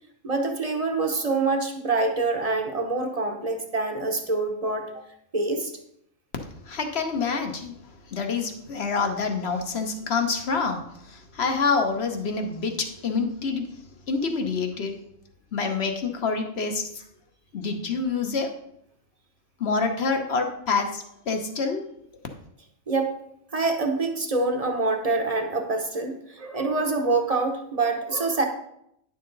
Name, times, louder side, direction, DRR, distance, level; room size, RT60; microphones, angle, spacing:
voice 1, 0.2-5.0 5.3-5.7 22.9-23.1 23.5-28.5, right 3 dB, 30° right, 4 dB, 0.9 m, -26 dB
voice 2, 6.6-7.7 8.1-10.8 11.1-13.6 14.1-14.9 15.5-17.0 17.5-18.5 19.6-21.8, left 4 dB, 50° left, 5 dB, 1.2 m, -27 dB
10.0 x 6.7 x 3.9 m, 0.76 s
omnidirectional pair, 1.4 m